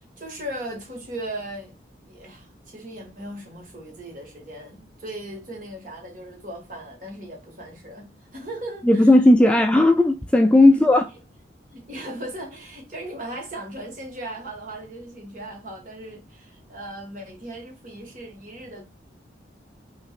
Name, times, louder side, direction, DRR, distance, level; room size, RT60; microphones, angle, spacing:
voice 1, 0.2-1.8 2.1-9.5 10.7-11.0 11.7-18.8, right 1 dB, 45° right, 1.7 m, -38 dB
voice 2, 8.9-11.0, left 1 dB, 5° left, 0.3 m, -15 dB
5.8 x 3.0 x 2.4 m
head